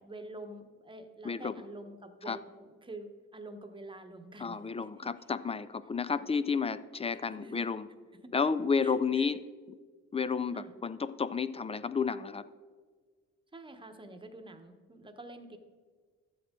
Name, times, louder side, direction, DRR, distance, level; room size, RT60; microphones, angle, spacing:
voice 1, 0.0-5.1 6.1-6.3 7.1-7.8 8.1-8.5 8.8-9.3 10.5-10.7 13.5-15.6, right 2 dB, 15° right, 7 dB, 1.0 m, -48 dB
voice 2, 1.2-1.6 2.3-2.4 4.4-7.9 8.3-9.4 10.1-12.5, left 5 dB, 20° left, 15 dB, 0.4 m, -31 dB
12.5 x 7.8 x 3.7 m, 1.5 s
cardioid pair, 90°, 30 cm